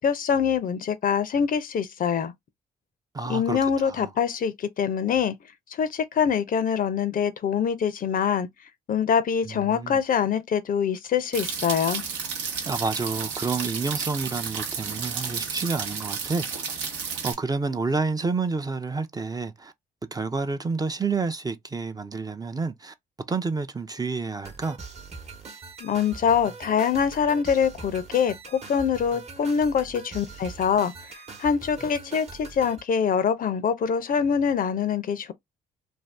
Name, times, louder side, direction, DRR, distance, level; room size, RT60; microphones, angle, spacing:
voice 1, 0.0-2.3 3.3-5.3 5.8-8.5 8.9-12.0 25.8-30.9 31.4-35.3, left 7 dB, 50° left, 0.5 m, -24 dB
voice 2, 3.1-4.1 9.4-10.0 12.7-16.7 17.2-19.7 20.1-22.9 23.3-24.8, right 4 dB, 20° right, 0.5 m, -29 dB
sound 1, 11.3-17.3, right 6 dB, 80° right, 0.8 m, -32 dB
sound 2, 24.4-32.8, right 4 dB, 35° right, 0.9 m, -42 dB
2.6 x 2.3 x 3.2 m
supercardioid pair, 60°, 18 cm